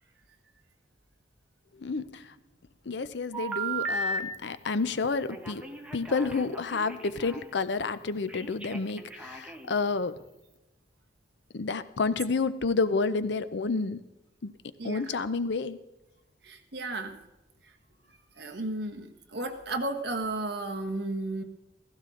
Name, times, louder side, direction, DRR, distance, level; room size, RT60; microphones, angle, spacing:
voice 1, 1.8-2.3 2.9-5.7 5.9-10.2 11.5-14.0 14.4-14.5 14.8-15.8, left 4 dB, 65° left, 13 dB, 0.6 m, -30 dB
Telephone, 3.3-4.2 5.3-7.4 8.3-9.7, right 3 dB, 5° right, 1.1 m, -36 dB
voice 2, 16.4-17.2 18.4-21.4, right 2 dB, 60° right, 4 dB, 1.5 m, -33 dB
15.5 x 15.5 x 3.8 m, 0.97 s
head